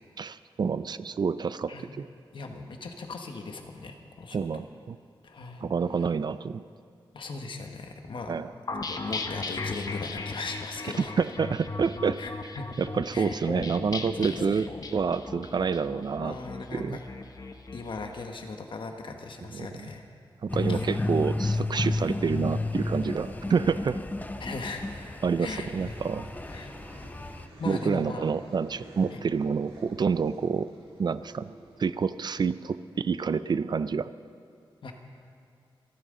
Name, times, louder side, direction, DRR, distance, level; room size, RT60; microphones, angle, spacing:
voice 1, 0.2-2.1 4.3-5.0 5.6-6.6 8.3-8.5 11.0-12.2 12.8-16.4 16.7-17.0 19.5-19.9 20.4-24.0 25.2-26.3 27.7-30.7 31.0-31.5 31.8-34.1, right 5 dB, 50° right, 14 dB, 0.4 m, -28 dB
voice 2, 2.3-4.6 5.2-5.6 7.1-8.3 8.9-11.1 12.2-12.7 13.1-13.4 14.2-14.3 16.2-17.0 17.7-20.0 20.7-20.9 24.4-24.8 25.4-25.9 26.5-26.7 27.6-28.2 29.1-29.2 34.8-34.9, left 3 dB, 65° left, 4 dB, 1.2 m, -38 dB
sound 1, 8.7-18.1, left 3 dB, 45° left, 0.9 m, -37 dB
sound 2, 20.5-27.5, left 2 dB, 20° left, 0.6 m, -32 dB
sound 3, 22.1-32.5, right 1 dB, 90° right, 3.8 m, -50 dB
27.0 x 9.1 x 3.8 m, 2.4 s
wide cardioid pair, 105°, 9 cm